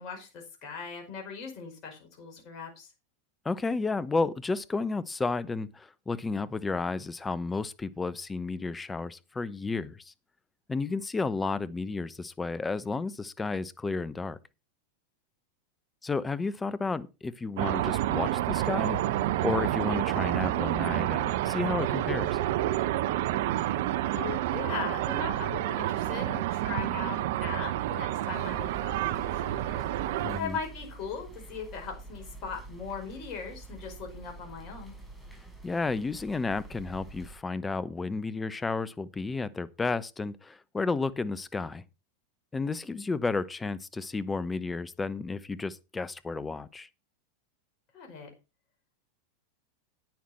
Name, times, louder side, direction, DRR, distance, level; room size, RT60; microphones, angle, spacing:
voice 1, 0.0-2.9 24.1-29.9 30.4-35.0 47.9-48.3, left 5 dB, 45° left, 5.2 m, -39 dB
voice 2, 3.4-10.1 10.7-14.4 16.0-19.0 19.4-22.4 30.2-30.6 35.6-41.8 42.5-46.9, left 3 dB, 15° left, 0.9 m, -32 dB
sound 1, 17.6-30.4, right 13 dB, 65° right, 0.8 m, -29 dB
sound 2, 28.3-37.4, right 3 dB, ahead, 5.2 m, -46 dB
10.5 x 9.3 x 4.2 m
hypercardioid pair, 95°, 0 cm